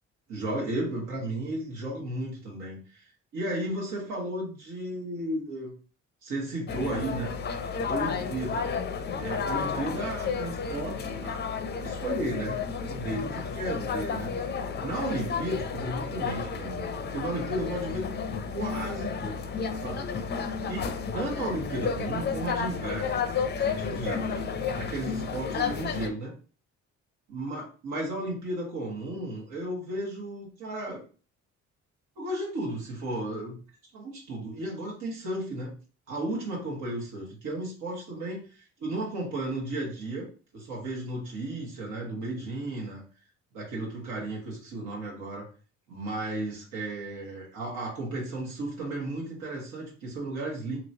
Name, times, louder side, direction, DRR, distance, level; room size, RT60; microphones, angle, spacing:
voice 1, 0.3-3.0 3.3-5.7 6.2-7.3 7.8-8.7 9.2-11.4 11.8-18.1 18.5-19.4 19.8-20.4 20.7-26.3 27.3-31.0 32.2-33.6 33.9-35.7 36.1-40.3 40.5-43.0 43.5-45.5 45.9-50.8, right 1 dB, 90° right, -4 dB, 1.4 m, -34 dB
sound 1, 6.7-26.1, left 6 dB, 35° left, 0.4 m, -32 dB
2.9 x 2.9 x 2.7 m, 0.38 s
cardioid pair, 90°, 30 cm